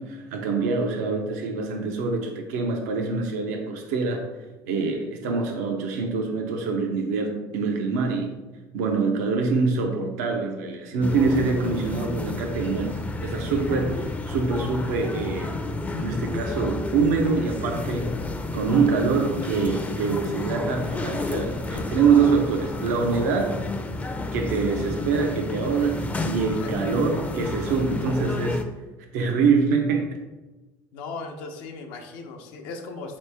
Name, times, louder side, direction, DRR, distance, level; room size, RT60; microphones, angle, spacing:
voice 1, 0.0-4.3 4.7-8.3 8.7-15.6 15.9-18.1 18.5-23.6 24.3-28.6 29.1-30.1, right 4 dB, 85° right, 3 dB, 0.5 m, -25 dB
sound 1, 11.0-28.6, left 2 dB, 15° left, 0.4 m, -31 dB
voice 2, 30.9-33.2, left 3 dB, 80° left, 3 dB, 0.7 m, -37 dB
4.1 x 3.0 x 3.3 m, 1.1 s
supercardioid pair, 85°, 9 cm